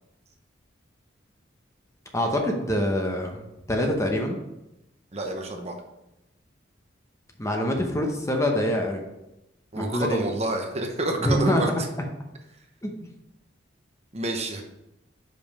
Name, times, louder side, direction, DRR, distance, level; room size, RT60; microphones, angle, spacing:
voice 1, 2.1-4.4 7.4-9.0 9.8-10.2 11.2-11.6 12.8-12.9, equal, 15° left, 2 dB, 0.8 m, -25 dB
voice 2, 5.1-5.7 9.7-11.9 14.1-14.6, right 2 dB, 35° right, 3 dB, 0.8 m, -29 dB
5.3 x 5.2 x 5.3 m, 0.93 s
head